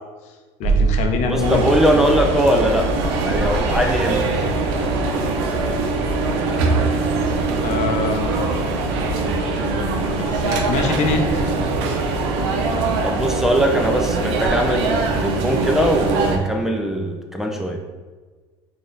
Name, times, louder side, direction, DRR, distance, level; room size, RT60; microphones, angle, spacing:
voice 1, 0.6-1.6 7.6-8.3 10.2-11.3, left 4 dB, 60° left, 4 dB, 0.6 m, -23 dB
sound 1, 0.6-6.3 6.6-6.7, right 4 dB, 45° right, 1.1 m, -27 dB
voice 2, 1.2-2.9 3.2-4.3 13.0-17.8, equal, 5° right, 1 dB, 0.4 m, -20 dB
sound 2, 1.4-16.4, right 3 dB, 75° right, 0.6 m, -22 dB
4.1 x 2.5 x 3.8 m, 1.4 s
supercardioid pair, 90°, 14 cm